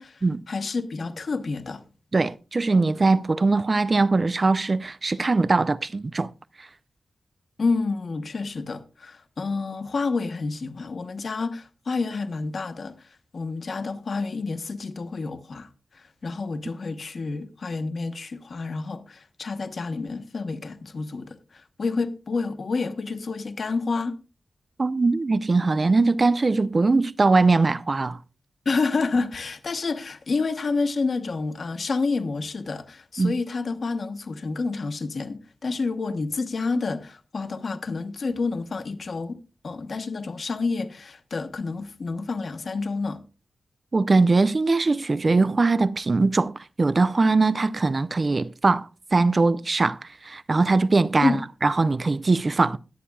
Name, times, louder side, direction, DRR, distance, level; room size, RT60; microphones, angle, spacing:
voice 1, 0.0-1.8 7.6-15.7 15.9-24.2 28.6-39.4 39.6-43.2 51.2-51.4, left 4 dB, 55° left, 1.0 m, -29 dB
voice 2, 2.1-6.3 6.6-6.7 24.8-28.2 33.2-33.3 43.9-52.8, right 3 dB, 35° right, 0.4 m, -21 dB
21.0 x 8.4 x 2.3 m
wide cardioid pair, 160°, 0 cm